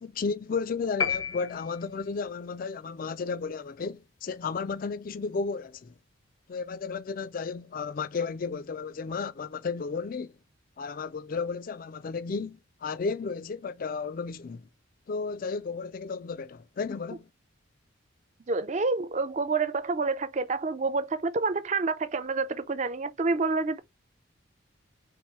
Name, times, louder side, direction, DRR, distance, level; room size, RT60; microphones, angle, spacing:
voice 1, 0.0-5.9 6.5-10.3 10.8-14.6 15.1-17.3, left 5 dB, 45° left, 0.3 m, -33 dB
sound 1, 1.0-2.2, left 6 dB, 80° left, 0.7 m, -31 dB
voice 2, 18.5-23.8, right 3 dB, 35° right, 0.4 m, -28 dB
4.8 x 3.2 x 3.0 m
head